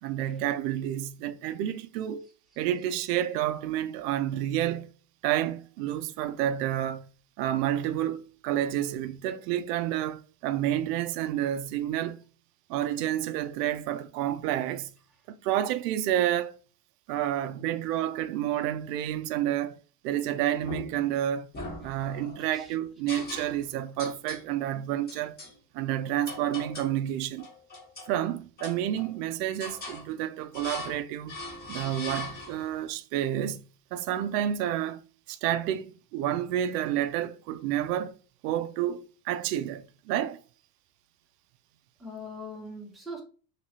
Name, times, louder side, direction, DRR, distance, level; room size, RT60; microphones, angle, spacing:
voice 1, 0.0-2.3 2.6-4.9 5.2-7.1 7.4-12.2 12.7-14.9 15.3-16.6 17.1-19.8 20.0-21.5 21.8-25.4 25.7-27.5 28.1-31.4 31.7-33.6 33.9-35.0 35.3-38.1 38.4-40.4, right 11 dB, 90° right, 0.5 m, -29 dB
sound 1, 20.6-21.1 21.5-22.4 23.1-23.7 24.0-24.5 25.1-25.5 26.3-27.0 27.4-28.1 28.6-29.2 29.6-30.1 30.5-31.0 31.3-32.7, left 2 dB, 20° left, 0.9 m, -40 dB
voice 2, 22.4-22.7 42.0-43.2, left 1 dB, ahead, 0.6 m, -41 dB
3.0 x 2.9 x 2.7 m
cardioid pair, 145°, 46 cm